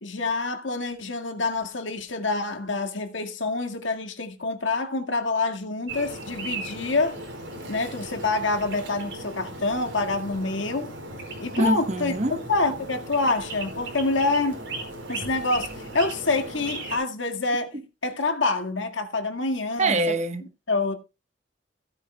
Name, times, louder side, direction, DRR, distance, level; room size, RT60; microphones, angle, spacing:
voice 1, 0.0-7.2 7.7-10.9 11.4-12.2 12.5-14.6 15.1-17.8 18.0-20.0 20.7-20.9, left 3 dB, 75° left, 1.9 m, -26 dB
sound 1, 5.9-17.0, right 2 dB, 60° right, 4.9 m, -37 dB
voice 2, 11.6-12.4 17.7-17.8 19.8-20.5, right 2 dB, 35° right, 1.2 m, -24 dB
16.0 x 9.7 x 2.3 m
head